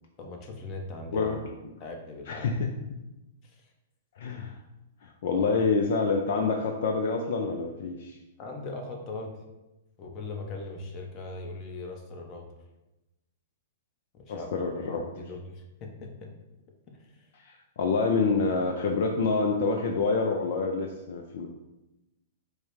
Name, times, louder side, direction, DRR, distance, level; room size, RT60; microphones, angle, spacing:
voice 1, 0.2-1.3 1.8-2.5 3.4-3.7 5.3-5.7 8.4-9.3 10.0-12.5 14.1-16.3 16.9-17.3, left 2 dB, 35° left, 2 dB, 0.9 m, -40 dB
voice 2, 2.3-2.7 4.2-4.6 5.0-8.2 14.3-15.0 17.4-21.5, left 4 dB, 60° left, 3 dB, 0.4 m, -27 dB
4.7 x 2.1 x 4.6 m, 0.99 s
hypercardioid pair, 115°, 0 cm